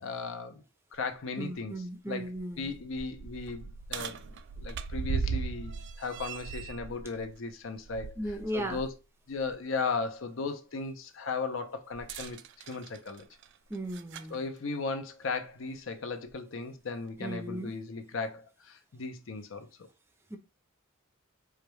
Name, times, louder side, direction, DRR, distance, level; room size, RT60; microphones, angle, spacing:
voice 1, 0.0-0.6 0.9-8.2 8.5-8.9 9.3-12.4 12.7-13.3 14.3-19.7, left 4 dB, 65° left, 0.6 m, -36 dB
sound 1, 0.9-1.0 1.5-1.6 2.2-8.9 9.3-9.5 11.9-14.4 15.4-15.5 16.3-16.4, right 5 dB, 60° right, 0.3 m, -38 dB
voice 2, 1.4-2.7 8.2-8.8 13.7-14.4 17.2-17.8 20.3-20.4, right 1 dB, 10° right, 0.6 m, -36 dB
4.8 x 2.2 x 3.1 m
head